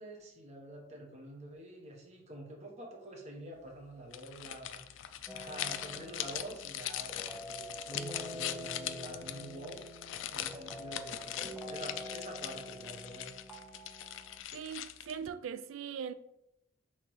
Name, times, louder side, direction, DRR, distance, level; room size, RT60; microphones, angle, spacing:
voice 1, 0.0-9.8 10.3-13.3, right 1 dB, 35° right, 1.0 m, -47 dB
sound 1, 4.1-15.3, left 12 dB, 65° left, 0.3 m, -41 dB
sound 2, 5.3-14.4, equal, 5° right, 0.4 m, -47 dB
voice 2, 14.5-16.1, right 7 dB, 85° right, 0.3 m, -40 dB
5.8 x 3.0 x 3.1 m
head